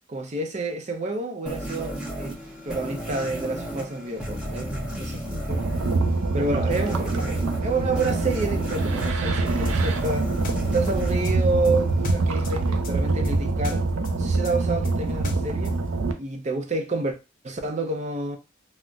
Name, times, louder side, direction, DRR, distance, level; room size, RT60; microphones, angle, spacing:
voice 1, 0.1-2.4 2.6-5.7 6.3-10.3 10.7-13.9 14.2-15.8 16.2-17.2 17.4-18.4, right 3 dB, 35° right, 0.5 m, -29 dB
sound 1, 1.5-12.2, equal, 5° right, 0.8 m, -34 dB
sound 2, 5.5-16.1, right 3 dB, 90° right, 0.5 m, -25 dB
sound 3, 9.6-12.6 12.8-15.8, left 5 dB, 40° left, 0.4 m, -39 dB
3.9 x 2.0 x 2.3 m
head